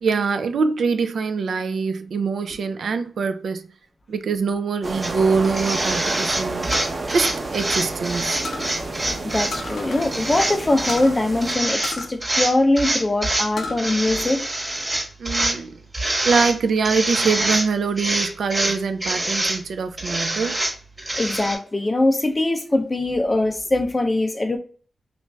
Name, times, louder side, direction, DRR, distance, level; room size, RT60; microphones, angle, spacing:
voice 1, 0.0-3.6 4.1-6.7 7.1-8.4 15.2-15.7 16.2-20.6, right 5 dB, 75° right, 0.4 m, -23 dB
sound 1, 4.8-11.5, right 2 dB, 35° right, 0.8 m, -31 dB
sound 2, 5.0-5.1 5.4-9.5 10.0-11.0 11.4-11.9 12.2-13.5 13.8-15.6 15.9-16.6 16.8-17.7 18.0-19.6 20.0-21.6, right 1 dB, 15° right, 1.1 m, -25 dB
sound 3, 6.7-8.1 8.4-8.8 9.5-10.1 10.4-10.5 10.9-11.2 11.8-13.0 13.3-13.8 14.3-15.0, left 3 dB, 75° left, 0.7 m, -33 dB
voice 2, 9.1-14.4 21.2-24.6, left 2 dB, 20° left, 0.5 m, -22 dB
3.1 x 2.4 x 3.3 m
wide cardioid pair, 180°, 0 cm